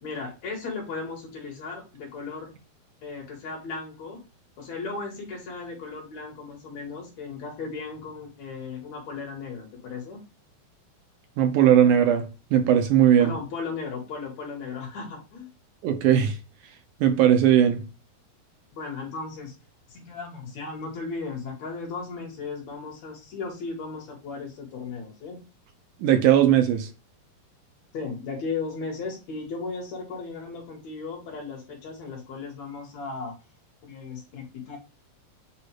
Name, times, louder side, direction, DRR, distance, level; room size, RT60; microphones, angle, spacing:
voice 1, 0.0-2.5 3.0-4.2 4.6-10.2 13.2-15.5 18.7-19.5 19.9-25.4 27.9-33.3 33.9-34.8, left 4 dB, 55° left, 2.5 m, -36 dB
voice 2, 11.4-12.3 12.5-13.3 15.8-16.4 17.0-17.8 26.0-26.9, right 10 dB, 70° right, 2.0 m, -18 dB
8.0 x 2.7 x 4.6 m
omnidirectional pair, 4.3 m